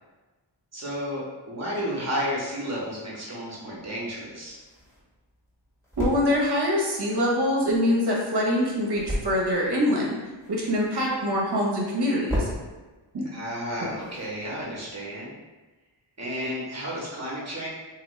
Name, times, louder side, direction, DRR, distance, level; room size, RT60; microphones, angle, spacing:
voice 1, 0.7-4.6 13.3-15.3 16.2-17.7, equal, 35° right, -5 dB, 1.2 m, -32 dB
sound 1, 3.7-14.9, equal, 5° left, 1.4 m, -38 dB
voice 2, 6.0-10.2 10.5-12.5 13.1-13.3, equal, 55° right, -3 dB, 1.0 m, -24 dB
2.9 x 2.6 x 3.1 m, 1.2 s
cardioid pair, 55°, 47 cm